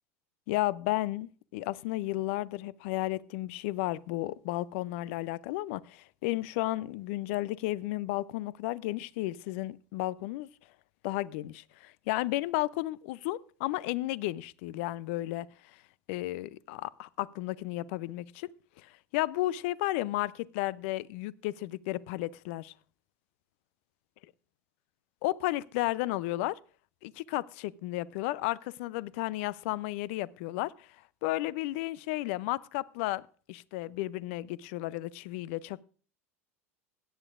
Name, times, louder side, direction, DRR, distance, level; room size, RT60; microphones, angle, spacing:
voice 1, 0.5-10.5 11.0-15.8 16.1-18.5 18.8-22.7 25.2-26.6 27.0-35.8, left 17 dB, 60° left, 0.5 m, -33 dB
17.0 x 10.0 x 2.4 m
hypercardioid pair, 80°, 7 cm